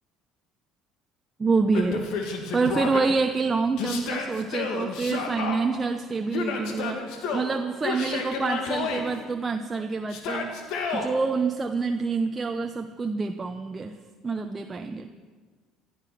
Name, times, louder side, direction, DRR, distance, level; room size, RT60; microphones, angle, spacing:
voice 1, 1.4-7.0 7.3-10.5 10.9-13.9 14.2-15.1, right 4 dB, 25° right, 6 dB, 0.8 m, -27 dB
Yell, 1.7-3.0 3.8-5.6 6.3-7.5 7.8-9.0 10.1-11.1, left 4 dB, 70° left, 2.2 m, -30 dB
15.5 x 12.0 x 6.1 m, 1.5 s
hypercardioid pair, 70°, 0 cm